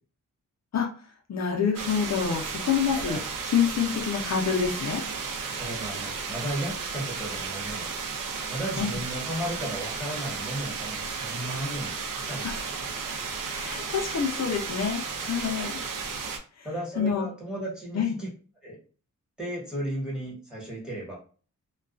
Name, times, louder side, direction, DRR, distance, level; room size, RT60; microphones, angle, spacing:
voice 1, 1.3-3.2 3.4-5.0 8.8-9.0 12.4-12.7 13.6-15.8 16.6-16.7 17.0-17.3 17.9-18.2, left 7 dB, 55° left, 0 dB, 0.6 m, -27 dB
sound 1, 1.7-16.4, right 5 dB, 80° right, 0.6 m, -34 dB
voice 2, 5.5-7.9 8.5-12.5 15.6-15.7 16.6-18.3 18.6-18.8 19.4-21.2, right 1 dB, 5° right, -5 dB, 1.3 m, -35 dB
2.3 x 2.3 x 2.4 m, 0.39 s
wide cardioid pair, 130°, 31 cm